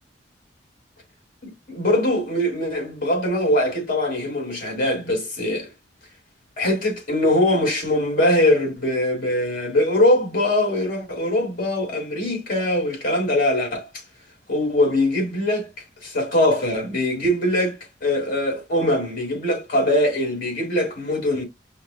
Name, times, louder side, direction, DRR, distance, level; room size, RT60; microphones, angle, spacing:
voice 1, 1.4-5.7 6.6-13.9 14.5-15.7 16.0-21.4, left 1 dB, 50° left, 2.9 m, -22 dB
5.8 x 2.1 x 4.2 m
head